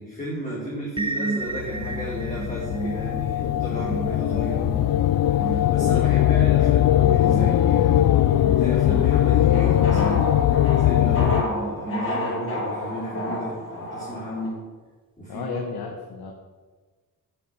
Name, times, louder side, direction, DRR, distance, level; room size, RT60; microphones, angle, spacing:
voice 1, 0.0-4.9 5.3-8.2 8.5-10.3 10.7-14.6 15.2-15.6, equal, 20° left, -7 dB, 4.4 m, -33 dB
sound 1, 1.0-12.6, right 3 dB, 15° right, 0.8 m, -35 dB
sound 2, 1.5-11.4, left 12 dB, 65° left, 0.5 m, -20 dB
sound 3, 7.9-14.5, left 1 dB, 35° left, 3.4 m, -32 dB
voice 2, 15.3-16.3, left 4 dB, 80° left, 1 dB, 1.7 m, -33 dB
11.0 x 7.1 x 9.0 m, 1.4 s
cardioid pair, 120°, 37 cm